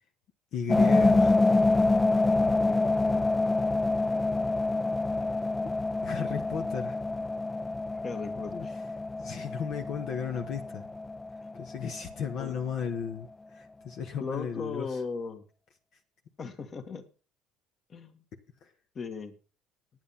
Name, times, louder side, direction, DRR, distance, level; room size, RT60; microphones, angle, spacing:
voice 1, 0.5-1.4 6.0-7.0 8.5-8.7 9.2-10.8 11.5-15.0 18.6-18.7, left 7 dB, 60° left, 5 dB, 1.4 m, -35 dB
sound 1, 0.7-12.5, left 2 dB, 15° left, 0.5 m, -27 dB
voice 2, 8.0-8.8 12.4-12.5 14.2-15.4 16.4-17.1 17.9-18.2 19.0-19.3, left 5 dB, 35° left, 9 dB, 1.9 m, -37 dB
9.5 x 9.4 x 5.7 m, 0.36 s
cardioid pair, 110°, 0 cm